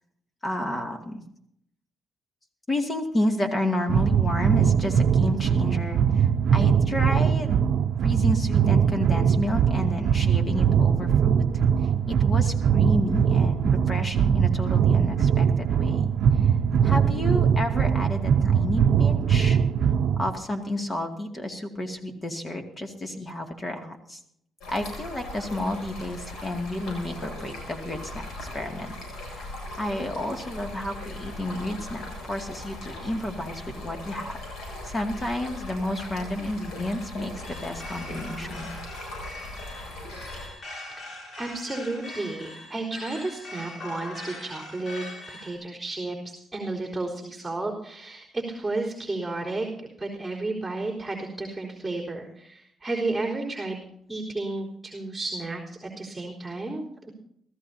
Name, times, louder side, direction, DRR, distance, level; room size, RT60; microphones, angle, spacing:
voice 1, 0.4-1.2 2.7-7.6 8.0-11.4 12.1-16.1 16.4-16.5 16.8-19.6 20.2-24.2 24.7-34.3 34.8-38.8, left 1 dB, 25° left, 4 dB, 2.4 m, -31 dB
sound 1, 3.9-20.3, right 7 dB, 65° right, 0.7 m, -21 dB
Stream, 24.6-40.5, left 1 dB, 80° left, 7.9 m, -39 dB
sound 2, 37.4-45.6, left 2 dB, 55° left, 7.8 m, -41 dB
voice 2, 41.4-53.8 54.1-57.1, right 2 dB, 5° right, -5 dB, 4.1 m, -32 dB
24.5 x 15.0 x 2.8 m, 0.71 s
cardioid pair, 90°, 0 cm